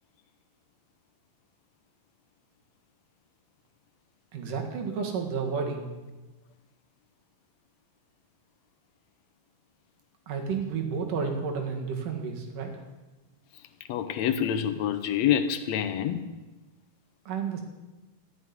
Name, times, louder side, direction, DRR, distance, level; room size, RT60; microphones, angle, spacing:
voice 1, 4.3-5.9 10.3-12.8 17.3-17.6, right 5 dB, 70° right, 2 dB, 3.4 m, -31 dB
voice 2, 13.9-16.2, left 9 dB, 75° left, 10 dB, 1.6 m, -26 dB
13.5 x 7.8 x 9.6 m, 1.1 s
omnidirectional pair, 3.9 m